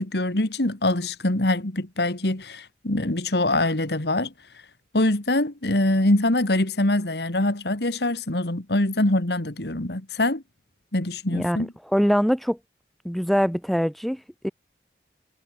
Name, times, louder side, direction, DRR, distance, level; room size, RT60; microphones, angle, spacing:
voice 1, 0.0-4.3 4.9-10.4 10.9-11.7, left 1 dB, 70° left, 2.2 m, -24 dB
voice 2, 11.9-12.6 13.0-14.5, equal, ahead, 1.0 m, -23 dB
head